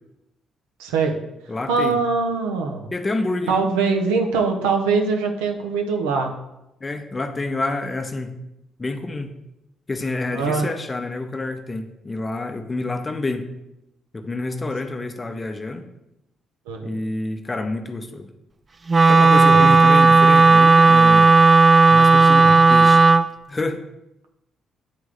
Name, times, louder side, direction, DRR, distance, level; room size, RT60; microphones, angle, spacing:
voice 1, 0.8-1.2 1.7-2.9 3.5-6.3 10.3-10.7 16.7-17.0 19.5-19.7 22.4-22.5, right 4 dB, 80° right, 3 dB, 0.6 m, -22 dB
voice 2, 1.5-2.0 2.9-3.7 6.8-8.4 8.8-9.3 9.9-13.5 14.1-15.8 16.8-18.3 19.1-21.3 21.9-23.0 23.5-23.8, left 2 dB, 30° left, 6 dB, 0.8 m, -28 dB
Wind instrument woodwind instrument, 18.9-23.3, right 3 dB, 35° right, 0.3 m, -12 dB
9.3 x 3.5 x 3.3 m, 0.89 s
hypercardioid pair, 45°, 0 cm